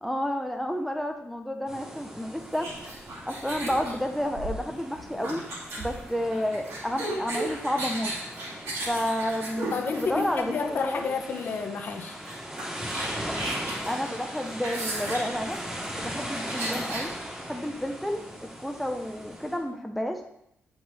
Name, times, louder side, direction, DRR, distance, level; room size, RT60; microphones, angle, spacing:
voice 1, 0.0-2.7 3.2-5.4 5.8-8.1 8.9-9.7 10.0-11.1 13.6-15.6 16.0-17.1 17.5-18.2 18.6-20.2, equal, ahead, 4 dB, 0.6 m, -30 dB
sound 1, 1.7-19.6, equal, 20° right, 1.9 m, -39 dB
sound 2, 2.5-10.6 11.4-11.6 11.8-11.9 12.3-17.1, right 2 dB, 70° right, 2.4 m, -35 dB
voice 2, 9.7-12.1, left 5 dB, 45° left, 4 dB, 0.8 m, -30 dB
8.6 x 4.8 x 4.1 m, 0.77 s
wide cardioid pair, 175°, 5 cm